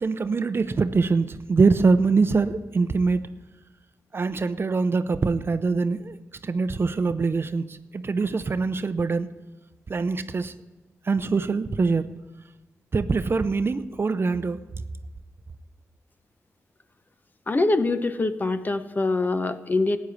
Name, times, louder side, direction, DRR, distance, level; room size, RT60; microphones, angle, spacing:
voice 1, 0.0-3.3 4.1-9.3 9.9-10.5 11.0-12.1 12.9-14.6, right 4 dB, 45° right, 0.6 m, -24 dB
voice 2, 17.5-20.0, left 2 dB, 30° left, 0.9 m, -24 dB
14.0 x 9.3 x 8.4 m
cardioid pair, 90°, 6 cm